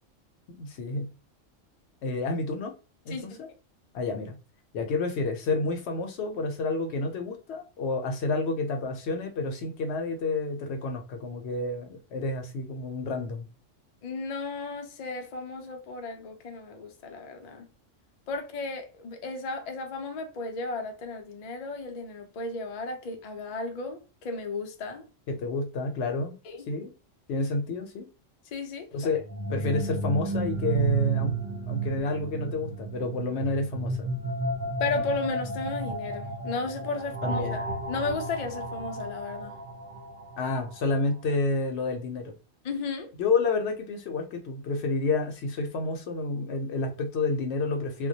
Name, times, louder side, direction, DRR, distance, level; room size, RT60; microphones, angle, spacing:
voice 1, 0.5-1.1 2.0-2.7 3.1-3.5 3.9-4.4 4.7-13.5 25.3-26.4 26.7-26.9 27.3-28.1 28.9-29.2 29.5-31.4 31.7-34.1 37.2-37.6 40.4-42.3 43.2-48.1, left 3 dB, 65° left, 0.8 m, -29 dB
voice 2, 3.1-3.4 14.0-17.7 18.3-25.0 26.5-26.6 28.5-29.1 34.8-39.5 42.6-43.1, left 3 dB, 80° left, 0.3 m, -34 dB
sound 1, 29.1-41.0, right 3 dB, 55° right, 0.6 m, -32 dB
2.2 x 2.1 x 2.7 m
omnidirectional pair, 1.3 m